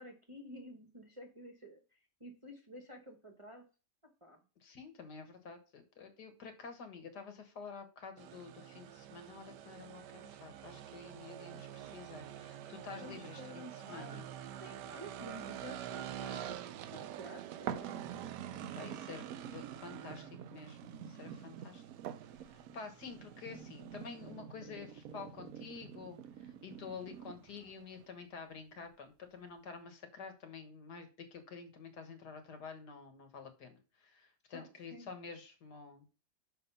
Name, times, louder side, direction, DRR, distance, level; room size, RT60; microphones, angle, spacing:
voice 1, 0.0-3.6 4.2-4.4 11.3-11.9 13.0-14.2 14.6-16.6 16.9-18.0 34.5-35.1, equal, 25° right, 2 dB, 0.9 m, -51 dB
voice 2, 4.6-14.3 18.7-21.8 22.4-36.0, left 5 dB, 75° left, 6 dB, 2.0 m, -49 dB
sound 1, 8.2-28.1, right 11 dB, 85° right, 1.3 m, -48 dB
sound 2, 17.7-27.7 28.2-28.3, right 8 dB, 65° right, 1.0 m, -47 dB
6.4 x 4.6 x 5.5 m, 0.33 s
omnidirectional pair, 1.8 m